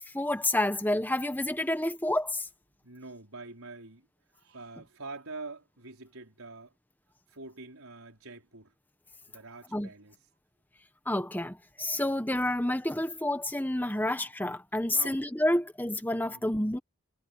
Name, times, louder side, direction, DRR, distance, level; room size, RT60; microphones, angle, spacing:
voice 1, 0.1-2.4 9.7-9.9 11.1-16.8, left 1 dB, 10° left, 1.3 m, -29 dB
voice 2, 2.8-4.1 4.4-6.7 7.3-8.7 9.3-10.2 11.9-12.2 14.9-15.2 16.2-16.4, right 3 dB, 80° right, 4.7 m, -45 dB
head